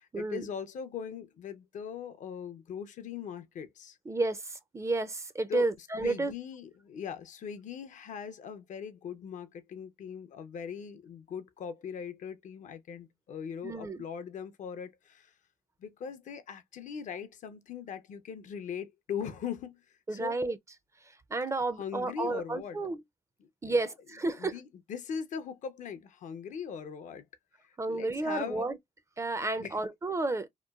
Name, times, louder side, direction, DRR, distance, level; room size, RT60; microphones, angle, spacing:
voice 1, 0.0-4.0 5.5-15.3 15.8-20.4 21.7-22.8 23.4-23.8 24.3-27.3 27.6-28.7 29.4-29.8, left 7 dB, 60° left, 0.5 m, -40 dB
voice 2, 4.1-6.3 13.6-14.0 20.1-20.6 21.3-23.0 23.6-24.6 27.8-28.7 29.2-30.5, right 2 dB, 20° right, 0.4 m, -31 dB
2.9 x 2.1 x 2.2 m
cardioid pair, 80°, 15 cm